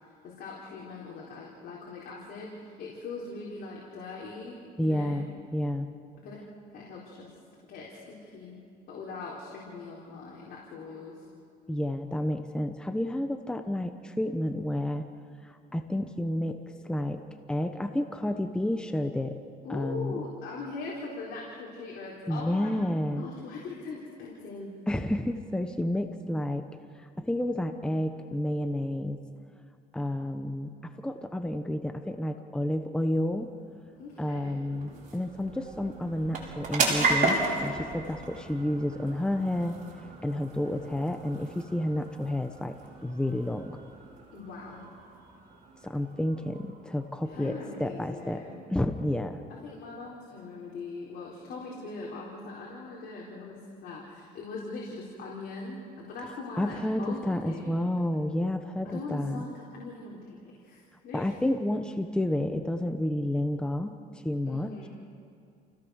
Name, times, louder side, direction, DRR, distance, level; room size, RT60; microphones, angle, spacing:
voice 1, 0.2-5.2 6.2-6.4 6.7-7.3 7.6-8.6 8.9-11.3 19.6-22.8 23.2-24.7 34.0-34.6 44.3-44.8 47.2-48.6 49.6-58.0 58.8-61.3 64.4-64.9, left 3 dB, 70° left, -4 dB, 4.2 m, -41 dB
voice 2, 4.8-5.9 11.7-15.1 15.4-16.6 16.8-17.2 17.5-19.4 19.7-20.2 22.3-23.2 24.9-26.7 27.0-29.2 29.9-33.5 34.2-39.8 40.2-42.8 43.0-43.7 45.8-48.4 48.7-49.4 56.6-59.4 61.1-64.7, left 1 dB, 5° left, 7 dB, 1.1 m, -30 dB
sound 1, 33.3-48.2, right 3 dB, 50° right, 5.3 m, -35 dB
28.5 x 17.0 x 6.5 m, 2.5 s
cardioid pair, 110°, 17 cm